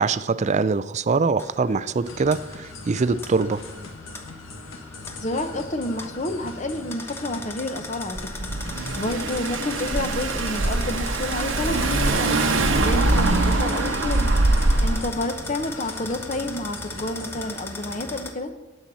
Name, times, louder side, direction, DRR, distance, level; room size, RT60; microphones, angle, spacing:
voice 1, 0.0-3.6, right 4 dB, 35° right, 15 dB, 0.4 m, -23 dB
sound 1, 1.4-18.3, left 2 dB, 10° left, 0.9 m, -39 dB
sound 2, 2.0-17.5, left 3 dB, 85° left, 1.5 m, -40 dB
voice 2, 5.2-8.4 9.0-12.4 12.8-14.3 14.8-18.5, left 1 dB, 40° left, 8 dB, 0.9 m, -29 dB
Car / Engine, 8.2-15.1, right 2 dB, 80° right, 1.1 m, -23 dB
18.5 x 7.7 x 4.2 m, 1.1 s
head